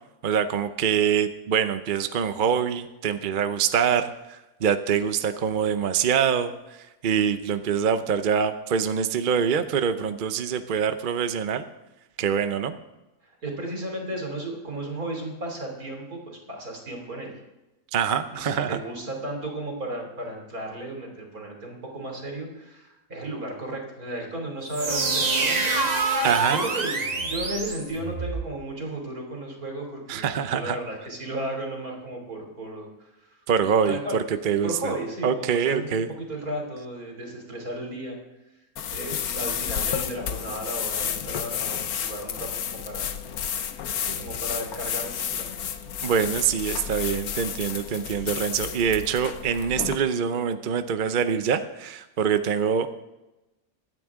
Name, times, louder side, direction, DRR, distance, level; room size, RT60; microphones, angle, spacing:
voice 1, 0.2-6.5 7.0-11.7 12.2-12.8 17.9-18.8 26.2-26.6 30.1-30.8 33.5-34.9 35.2-36.1 46.0-52.9, right 7 dB, 50° right, 9 dB, 0.6 m, -24 dB
voice 2, 13.2-17.3 18.3-25.8 26.5-33.4 33.9-34.2 34.6-35.9 36.3-38.2 38.9-43.2 44.0-45.7, right 1 dB, 75° right, 1 dB, 3.5 m, -34 dB
sound 1, 24.7-28.5, right 3 dB, 30° right, 1.1 m, -26 dB
sound 2, 38.8-50.0, left 8 dB, 80° left, 1.3 m, -31 dB
24.0 x 9.2 x 3.6 m, 1.0 s
omnidirectional pair, 1.6 m